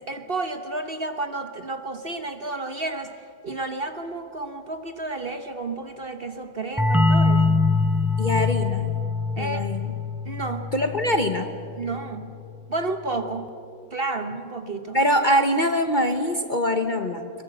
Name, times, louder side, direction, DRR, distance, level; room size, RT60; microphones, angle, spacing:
voice 1, 0.0-3.1 3.4-7.6 9.4-9.7 10.2-10.7 11.8-12.3 12.7-13.5 13.9-15.0, right 3 dB, 40° right, 7 dB, 1.1 m, -31 dB
sound 1, 6.8-12.2, left 3 dB, ahead, 0.5 m, -24 dB
voice 2, 8.2-8.9 9.4-9.9 10.7-11.5 14.9-17.3, equal, 35° left, 6 dB, 1.0 m, -23 dB
23.0 x 22.0 x 8.2 m, 2.6 s
omnidirectional pair, 1.8 m